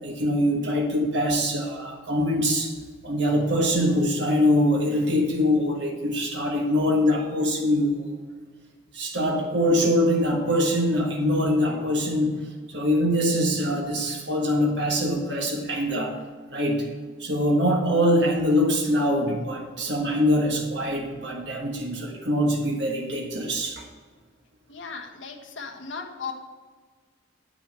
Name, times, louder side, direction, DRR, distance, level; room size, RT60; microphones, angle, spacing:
voice 1, 0.0-2.7 3.0-8.2 8.9-16.2 16.5-16.9 17.2-23.8, equal, 60° right, 0 dB, 1.4 m, -23 dB
voice 2, 24.7-26.3, left 5 dB, 75° left, 1 dB, 1.4 m, -36 dB
8.7 x 6.3 x 5.4 m, 1.5 s
head